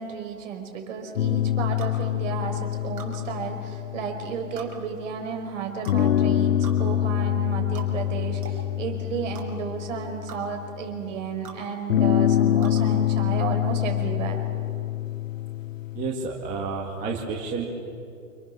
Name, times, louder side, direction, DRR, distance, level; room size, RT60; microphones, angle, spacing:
voice 1, 0.0-14.4, right 6 dB, 55° right, 4 dB, 5.5 m, -33 dB
sound 1, 1.2-5.1 5.9-10.9 11.9-16.1, left 11 dB, 55° left, 0.8 m, -25 dB
sound 2, 1.8-2.0 3.0-3.1 4.6-4.7 5.8-6.0 6.6-6.8 7.7-7.9 8.4-8.6 9.3-9.5 10.3-10.4 11.4-11.6 12.6-12.8, right 6 dB, 80° right, 6.4 m, -42 dB
voice 2, 15.9-17.6, right 4 dB, 15° right, -1 dB, 2.1 m, -30 dB
29.0 x 27.0 x 7.0 m, 2.5 s
hypercardioid pair, 165°, 46 cm